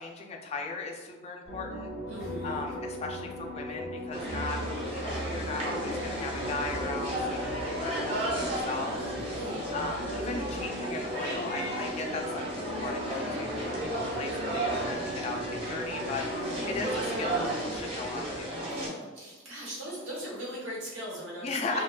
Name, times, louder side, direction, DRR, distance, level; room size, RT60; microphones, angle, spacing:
voice 1, 0.0-1.9 2.4-4.6 4.9-9.0 9.7-18.6 21.4-21.8, left 3 dB, 35° left, 1 dB, 0.3 m, -37 dB
sound 1, 1.5-17.8, equal, 60° right, 0.9 m, -38 dB
voice 2, 2.1-2.7 9.1-9.6 16.4-16.8 18.7-21.8, equal, 85° right, -5 dB, 1.1 m, -40 dB
sound 2, 4.1-18.9, right 1 dB, 30° right, 0.6 m, -34 dB
2.8 x 2.2 x 2.3 m, 1.2 s
head